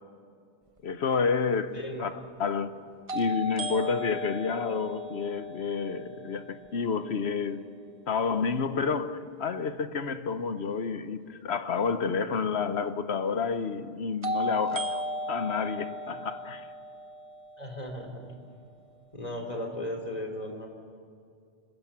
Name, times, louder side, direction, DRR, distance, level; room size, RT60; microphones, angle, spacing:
voice 1, 0.8-2.8 3.1-7.7 8.1-15.0 15.3-16.7, left 5 dB, 85° left, 1.3 m, -30 dB
sound 1, 1.1-1.2 3.1-7.0 14.2-18.2, equal, 35° right, 1.0 m, -36 dB
voice 2, 1.7-2.1 17.6-18.3 19.1-20.7, left 1 dB, 40° left, 3.2 m, -36 dB
26.0 x 21.0 x 7.5 m
omnidirectional pair, 1.1 m